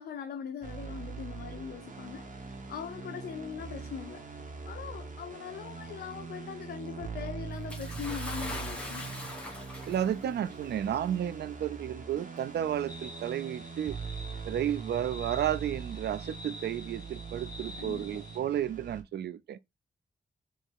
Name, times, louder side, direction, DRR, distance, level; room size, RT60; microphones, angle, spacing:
voice 1, 0.0-4.2 4.7-9.1 17.8-18.2, left 8 dB, 75° left, 0.5 m, -41 dB
sound 1, 0.6-19.0, right 5 dB, 50° right, 0.9 m, -42 dB
Bathtub (filling or washing) / Splash splatter, 7.7-10.3 11.2-11.3 12.3-12.4, left 1 dB, 5° left, 1.2 m, -41 dB
voice 2, 9.9-14.0 14.5-19.6, right 10 dB, 80° right, 0.4 m, -32 dB
sound 2, 12.9-18.4, left 2 dB, 25° left, 1.1 m, -48 dB
3.1 x 2.9 x 4.4 m
wide cardioid pair, 115°, 17 cm